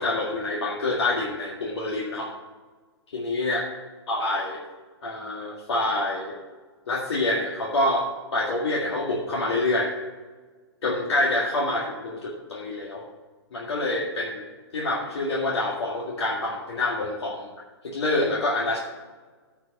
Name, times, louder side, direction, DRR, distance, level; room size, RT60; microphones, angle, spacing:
voice 1, 0.0-2.3 3.1-3.6 4.1-4.6 5.0-6.4 6.9-8.1 8.3-9.9 10.8-13.0 13.5-17.5 17.8-18.8, left 2 dB, 70° left, -3 dB, 1.9 m, -26 dB
10.5 x 4.8 x 6.3 m, 1.3 s
hypercardioid pair, 130°, 14 cm